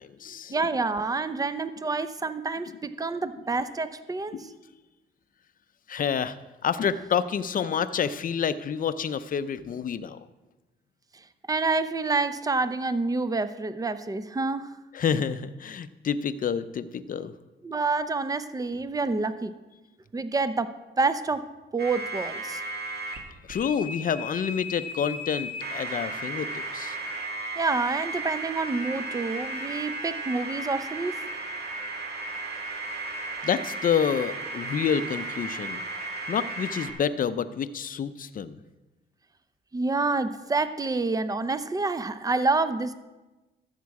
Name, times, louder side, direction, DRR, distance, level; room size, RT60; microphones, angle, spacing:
voice 1, 0.0-0.7 2.7-2.8 4.3-4.6 5.9-6.4 6.6-10.2 14.9-17.3 23.5-27.0 33.4-35.8 36.3-38.6, left 7 dB, 45° left, 13 dB, 0.6 m, -28 dB
voice 2, 0.5-4.3 11.5-14.8 17.6-19.5 20.1-21.5 21.7-22.6 27.6-31.2 39.7-43.0, right 3 dB, 20° right, 12 dB, 0.6 m, -28 dB
sound 1, 21.8-23.2 23.5-36.9, right 2 dB, 55° right, 2.1 m, -35 dB
13.5 x 7.3 x 4.8 m, 1.1 s
cardioid pair, 90°, 20 cm